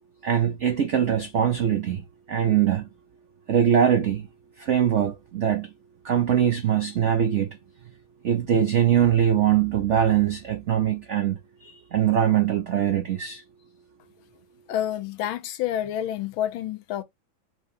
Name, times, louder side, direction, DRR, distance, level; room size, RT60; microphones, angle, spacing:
voice 1, 0.2-2.9 3.5-4.3 4.6-5.7 6.0-7.6 8.2-13.4, right 9 dB, 85° right, 0.6 m, -22 dB
voice 2, 14.7-17.0, left 11 dB, 85° left, 1.5 m, -28 dB
4.6 x 2.8 x 3.2 m
omnidirectional pair, 2.2 m